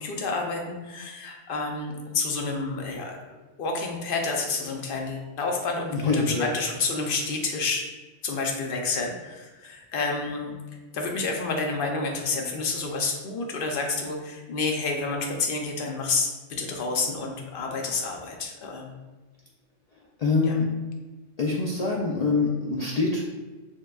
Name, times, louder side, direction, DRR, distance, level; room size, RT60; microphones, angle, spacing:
voice 1, 0.0-3.2 3.6-7.9 8.2-10.5 10.9-18.9 20.4-20.6, left 3 dB, 55° left, 1 dB, 0.7 m, -29 dB
voice 2, 5.9-6.5 20.2-20.7 21.4-23.2, left 4 dB, 85° left, -3 dB, 0.3 m, -24 dB
6.2 x 2.2 x 2.3 m, 1.2 s
omnidirectional pair, 1.3 m